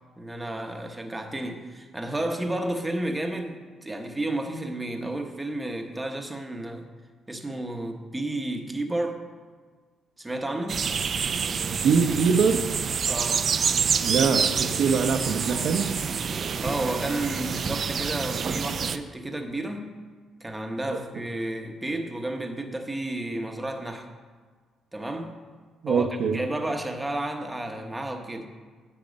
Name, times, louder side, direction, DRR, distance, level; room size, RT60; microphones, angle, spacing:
voice 1, 0.2-6.9 7.3-9.2 10.2-10.8 13.1-13.5 16.6-19.9 20.4-24.1 24.9-25.4 25.9-28.5, right 1 dB, 15° right, 1.0 m, -32 dB
sound 1, 10.7-19.0, right 6 dB, 50° right, 0.4 m, -27 dB
voice 2, 11.8-12.6 14.0-15.9 25.8-26.4, right 5 dB, 70° right, 0.8 m, -23 dB
8.8 x 6.0 x 5.2 m
cardioid pair, 90°, 0 cm